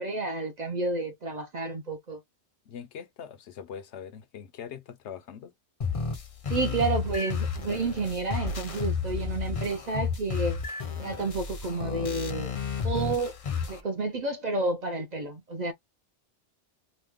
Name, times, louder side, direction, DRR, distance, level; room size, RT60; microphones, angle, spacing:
voice 1, 0.0-2.2 6.5-10.6 11.0-12.5 12.8-13.4 13.7-15.7, right 3 dB, 50° right, 0.6 m, -30 dB
voice 2, 2.7-5.5, left 8 dB, 75° left, 0.9 m, -42 dB
sound 1, 5.8-13.8, left 5 dB, 40° left, 0.5 m, -32 dB
3.0 x 2.1 x 3.5 m
omnidirectional pair, 1.2 m